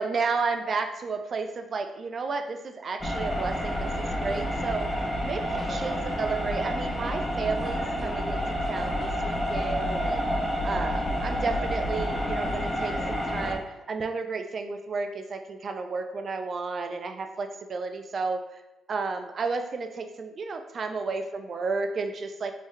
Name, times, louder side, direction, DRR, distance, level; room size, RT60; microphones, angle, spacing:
voice 1, 0.0-8.4 8.7-10.2 10.6-18.4 18.9-22.5, right 4 dB, 45° right, 6 dB, 0.4 m, -32 dB
sound 1, 3.0-13.6, equal, 10° left, 0.8 m, -29 dB
3.7 x 2.7 x 3.1 m, 1.0 s
cardioid pair, 90°, 0 cm